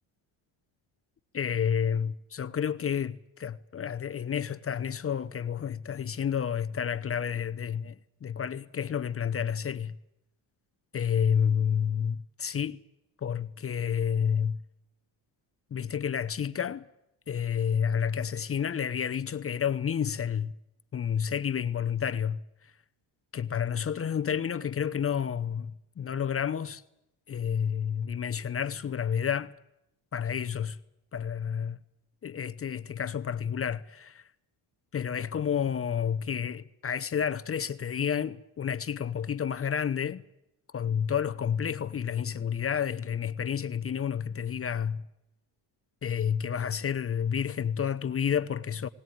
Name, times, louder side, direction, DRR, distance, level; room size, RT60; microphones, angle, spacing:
voice 1, 1.3-8.0 8.2-9.9 10.9-12.8 13.2-14.6 15.7-16.8 17.3-20.5 20.9-22.4 23.3-25.7 26.0-26.8 27.3-29.5 30.1-30.8 31.1-31.8 32.2-34.2 34.9-40.2 40.7-45.0 46.0-48.9, left 8 dB, 30° left, 0.7 m, -30 dB
20.5 x 19.0 x 9.3 m
cardioid pair, 125°, 46 cm